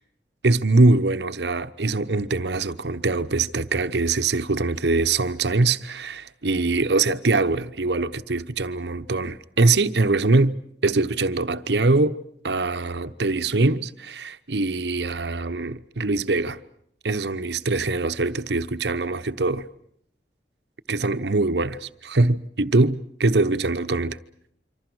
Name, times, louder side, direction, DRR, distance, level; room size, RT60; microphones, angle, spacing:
voice 1, 0.4-10.6 10.8-12.2 12.4-16.6 17.0-19.7 20.9-24.2, right 3 dB, 75° right, 1.0 m, -23 dB
27.0 x 25.5 x 6.3 m
head